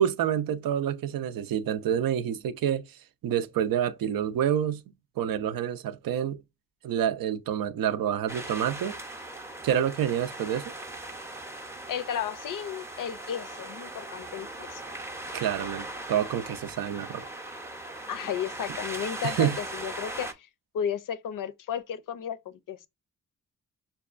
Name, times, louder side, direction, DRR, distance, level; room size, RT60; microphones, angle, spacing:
voice 1, 0.0-2.8 3.2-4.8 5.2-6.4 6.8-9.0 9.6-10.7 15.3-17.2 19.2-19.6, right 9 dB, 75° right, 0.5 m, -27 dB
sound 1, 8.3-20.3, right 1 dB, 10° right, 0.6 m, -39 dB
voice 2, 11.9-14.8 18.1-20.5 20.7-22.8, left 8 dB, 65° left, 0.5 m, -33 dB
5.7 x 2.2 x 2.4 m
cardioid pair, 70°, 34 cm